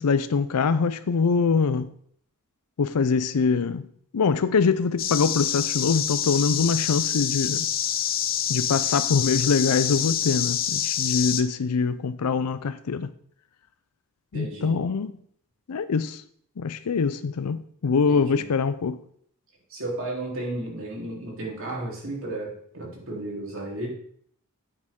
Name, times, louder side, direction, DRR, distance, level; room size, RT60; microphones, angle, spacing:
voice 1, 0.0-1.9 2.8-3.9 4.1-7.7 8.5-13.1 14.3-15.2 15.7-16.2 16.6-19.0, left 5 dB, 90° left, 0.5 m, -24 dB
sound 1, 5.0-11.4, left 10 dB, 40° left, 0.7 m, -26 dB
voice 2, 14.3-14.8 18.1-18.5 19.7-23.9, right 2 dB, 60° right, 3.5 m, -33 dB
10.5 x 8.6 x 3.7 m
head